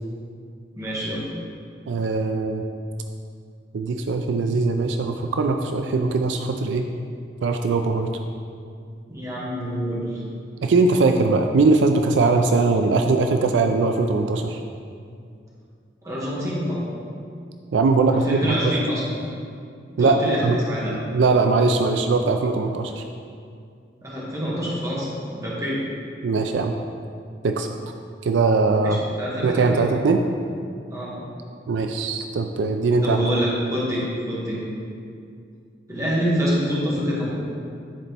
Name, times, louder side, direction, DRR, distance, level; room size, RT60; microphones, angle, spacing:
voice 1, 0.8-1.2 9.1-10.2 16.0-16.9 18.1-19.0 20.0-21.0 24.0-25.8 28.8-29.8 30.9-31.2 33.0-34.6 35.9-37.3, equal, 20° right, -7 dB, 1.4 m, -26 dB
voice 2, 1.9-2.6 3.7-6.8 7.4-8.1 10.6-14.6 17.7-18.7 20.0-20.6 20.9-23.0 26.2-26.7 27.4-27.7 28.2-29.0 29.4-30.2 31.7-33.2, right 3 dB, 85° right, 5 dB, 0.4 m, -21 dB
10.5 x 4.2 x 3.4 m, 2.3 s
head